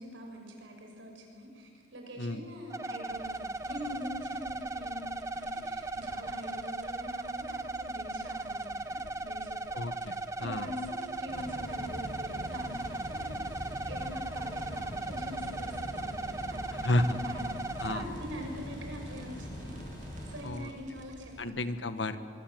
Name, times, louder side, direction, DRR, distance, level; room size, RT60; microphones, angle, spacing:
voice 1, 0.0-9.7 10.4-19.8 20.2-21.7, equal, 90° right, 2 dB, 6.5 m, -44 dB
sound 1, 2.7-18.0, right 2 dB, 15° right, 0.7 m, -37 dB
sound 2, 3.1-21.4, right 1 dB, 40° right, 2.1 m, -53 dB
voice 2, 9.7-10.7 16.8-17.0 17.8-18.1 20.4-20.7 21.4-22.2, left 1 dB, 80° left, 11 dB, 1.4 m, -31 dB
sound 3, 11.3-20.4, equal, 25° left, 6.9 m, -42 dB
24.5 x 24.0 x 7.9 m, 2.5 s
head